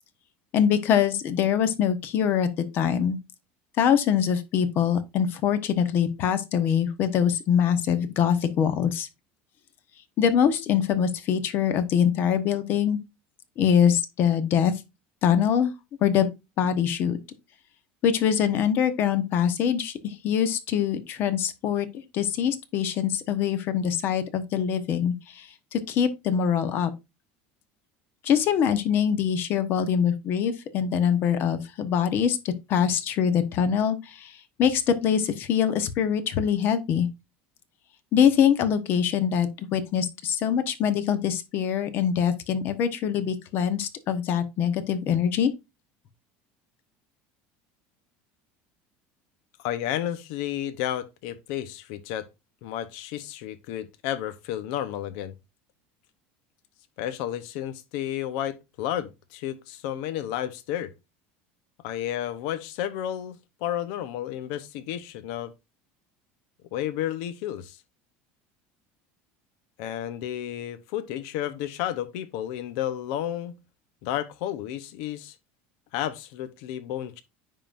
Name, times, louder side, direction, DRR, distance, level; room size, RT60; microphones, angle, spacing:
voice 1, 0.5-3.2 3.8-9.1 10.2-13.0 13.6-14.7 15.2-15.7 16.0-16.3 16.6-17.2 18.0-26.9 28.2-34.3 34.6-37.1 38.1-45.5, left 8 dB, 45° left, 1.0 m, -24 dB
voice 2, 49.6-52.3 52.6-55.3 57.0-60.9 61.8-65.5 66.7-67.8 69.8-73.6 74.0-75.3 75.9-77.2, left 11 dB, 75° left, 0.8 m, -32 dB
9.8 x 3.7 x 2.5 m
cardioid pair, 145°, 5 cm